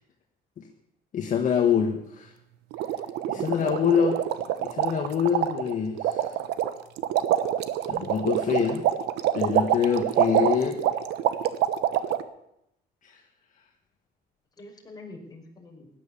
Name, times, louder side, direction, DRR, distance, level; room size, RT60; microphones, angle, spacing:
voice 1, 1.1-2.3 3.3-4.2 4.6-6.3 7.9-8.8 9.3-10.8 13.0-13.2, left 7 dB, 50° left, 3 dB, 1.7 m, -25 dB
sound 1, 2.7-12.2, right 11 dB, 85° right, 1.1 m, -26 dB
voice 2, 3.3-4.2 14.6-15.9, left 3 dB, 25° left, 0 dB, 4.9 m, -44 dB
16.5 x 11.0 x 7.1 m, 0.79 s
cardioid pair, 110°, 17 cm